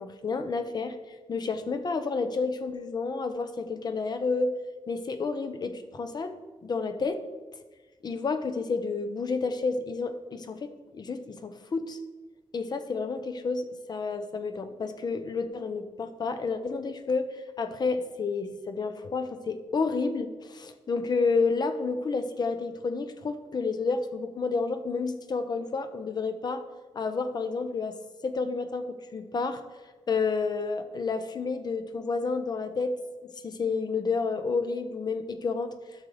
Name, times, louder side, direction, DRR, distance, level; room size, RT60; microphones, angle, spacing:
voice 1, 0.0-4.6 4.9-6.3 6.6-7.2 8.0-12.0 12.5-26.6 26.9-28.0 28.2-29.6 30.1-33.0 33.2-35.7, left 4 dB, 40° left, 9 dB, 0.6 m, -30 dB
13.0 x 6.4 x 3.2 m, 1.3 s
wide cardioid pair, 165°, 11 cm